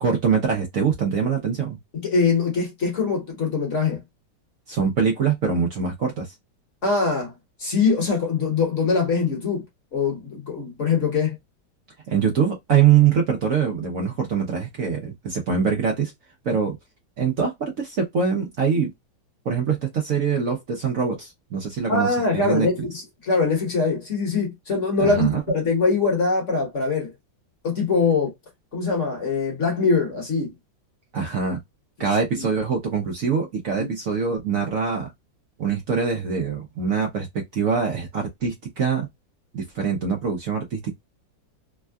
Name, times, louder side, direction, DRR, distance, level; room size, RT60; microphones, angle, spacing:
voice 1, 0.0-1.8 4.7-6.3 12.1-16.1 16.4-16.8 17.2-18.9 19.4-22.7 25.0-25.4 31.1-31.6 32.0-35.1 35.6-39.1 39.5-40.9, right 6 dB, 55° right, 1.0 m, -23 dB
voice 2, 1.9-4.0 6.8-7.3 7.6-9.6 9.9-11.4 21.9-27.1 27.6-28.3 28.7-30.5 32.4-32.5 33.8-33.9, left 4 dB, 45° left, 1.3 m, -23 dB
3.5 x 2.2 x 2.2 m
omnidirectional pair, 2.0 m